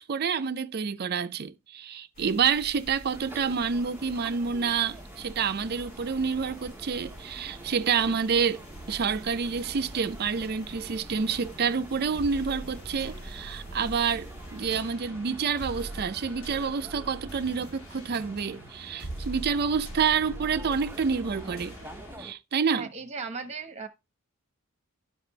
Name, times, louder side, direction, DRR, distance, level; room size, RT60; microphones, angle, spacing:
voice 1, 0.0-8.6 8.9-21.7 22.2-22.9, right 6 dB, 50° right, 0.5 m, -28 dB
sound 1, 2.1-14.8, equal, 45° left, 4.3 m, -48 dB
sound 2, 3.1-22.3, right 1 dB, 10° right, 0.7 m, -48 dB
sound 3, 6.9-22.2, right 1 dB, 85° left, 3.0 m, -44 dB
voice 2, 22.7-23.9, right 5 dB, 30° right, 1.1 m, -36 dB
12.0 x 4.2 x 3.2 m
head